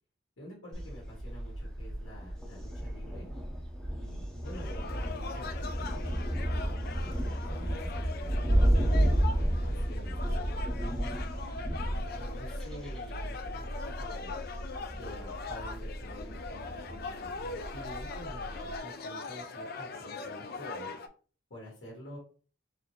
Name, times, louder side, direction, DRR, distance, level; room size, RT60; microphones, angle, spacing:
voice 1, 0.4-3.3 3.8-10.9 11.5-14.4 14.9-20.9 21.5-22.2, equal, 75° left, -3 dB, 1.3 m, -49 dB
Thunder, 0.7-18.8, right 1 dB, 5° left, 0.7 m, -32 dB
sound 1, 4.4-21.1, left 4 dB, 50° left, 0.4 m, -41 dB
3.9 x 2.7 x 3.1 m, 0.39 s
head